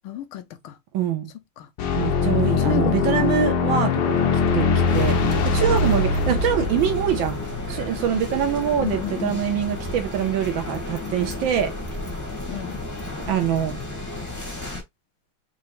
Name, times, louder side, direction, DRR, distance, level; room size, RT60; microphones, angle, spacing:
voice 1, 0.0-0.7 1.6-1.7 2.4-3.5 7.5-7.6 8.8-9.4 12.5-12.8, left 12 dB, 80° left, 1.5 m, -31 dB
voice 2, 0.9-1.3 2.0-11.7 13.3-13.8, right 9 dB, 70° right, 1.6 m, -24 dB
sound 1, 1.8-8.5, left 4 dB, 65° left, 1.2 m, -22 dB
sound 2, 4.9-14.8, left 2 dB, 15° left, 0.8 m, -32 dB
4.8 x 2.9 x 3.0 m
omnidirectional pair, 2.3 m